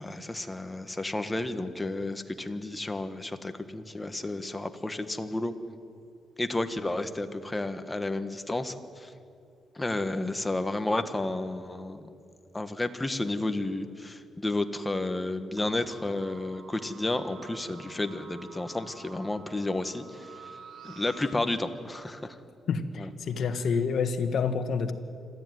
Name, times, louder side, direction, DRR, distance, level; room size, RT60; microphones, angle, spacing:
voice 1, 0.0-5.5 6.4-9.1 9.7-12.1 12.5-20.3 20.8-22.3 23.0-23.1, left 2 dB, 15° left, 8 dB, 1.5 m, -32 dB
sound 1, 15.6-21.3, right 4 dB, 60° right, 4.0 m, -49 dB
voice 2, 22.7-24.9, left 5 dB, 65° left, 8 dB, 1.6 m, -28 dB
26.5 x 14.0 x 9.5 m, 2.6 s
cardioid pair, 95°, 0 cm